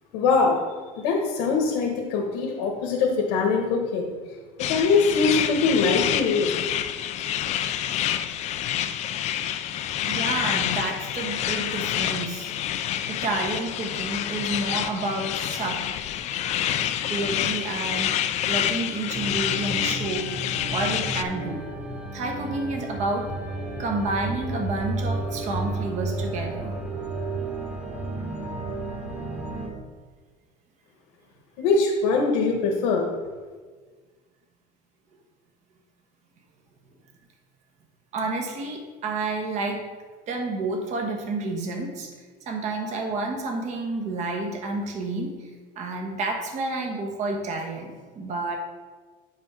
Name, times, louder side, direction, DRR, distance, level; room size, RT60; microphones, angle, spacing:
voice 1, 0.1-0.6 1.0-4.1 4.6-6.5 31.6-33.0, left 4 dB, 85° left, 1 dB, 1.3 m, -22 dB
sound 1, 4.6-21.2, left 11 dB, 40° left, 0.4 m, -28 dB
voice 2, 10.1-12.5 13.1-15.8 17.0-18.2 18.5-20.3 20.7-21.7 22.1-23.3 23.8-26.8 38.1-39.9 40.3-42.1 42.4-48.6, right 2 dB, 40° right, 1 dB, 1.3 m, -30 dB
sound 2, 19.1-29.7, right 2 dB, 10° right, 1.3 m, -32 dB
8.8 x 3.8 x 5.6 m, 1.5 s
cardioid pair, 155°, 18 cm